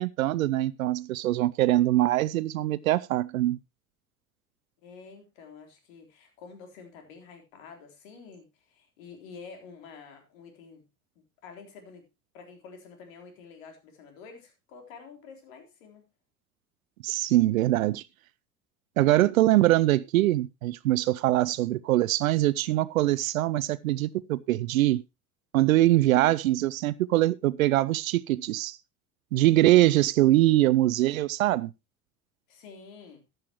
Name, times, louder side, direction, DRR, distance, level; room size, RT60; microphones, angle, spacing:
voice 1, 0.0-3.6 17.0-18.0 19.0-25.0 25.5-28.8 29.3-31.7, right 15 dB, 70° right, 0.6 m, -23 dB
voice 2, 4.8-10.8 11.4-12.0 12.3-16.0 32.5-33.2, left 5 dB, 65° left, 3.7 m, -48 dB
14.0 x 10.5 x 3.0 m
figure-of-eight pair, 65°, 43 cm